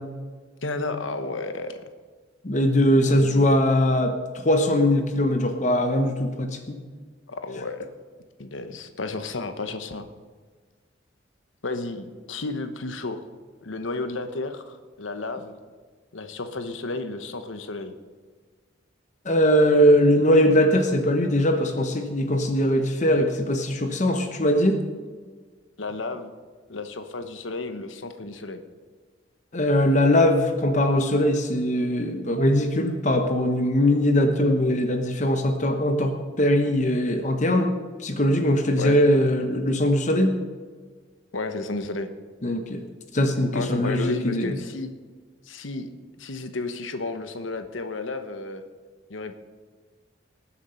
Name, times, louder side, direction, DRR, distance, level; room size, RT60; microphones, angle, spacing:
voice 1, 0.6-1.8 3.1-3.5 7.3-7.9 8.4-10.1 11.6-13.2 13.6-15.6 16.1-17.9 25.8-26.4 26.7-28.6 38.8-39.0 41.3-42.1 43.5-44.9 45.5-45.9 46.2-48.6 49.1-49.3, left 3 dB, 90° left, 8 dB, 1.1 m, -32 dB
voice 2, 2.4-6.8 19.2-24.8 29.5-37.7 38.0-40.3 42.4-42.8 43.1-44.6, left 1 dB, 40° left, 6 dB, 1.0 m, -21 dB
19.5 x 7.3 x 5.7 m, 1.5 s
head